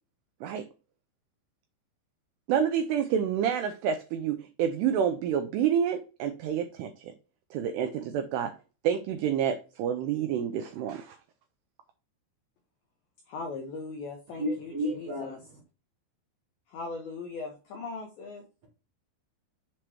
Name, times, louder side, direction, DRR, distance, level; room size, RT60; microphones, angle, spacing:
voice 1, 2.5-7.1 7.5-8.5 8.8-11.2, right 8 dB, 85° right, 7 dB, 2.3 m, -28 dB
voice 2, 13.3-15.4 16.7-18.4, left 3 dB, 80° left, 3 dB, 2.1 m, -39 dB
voice 3, 14.4-15.3, equal, 50° right, -3 dB, 1.9 m, -31 dB
7.5 x 3.0 x 4.6 m, 0.34 s
omnidirectional pair, 5.3 m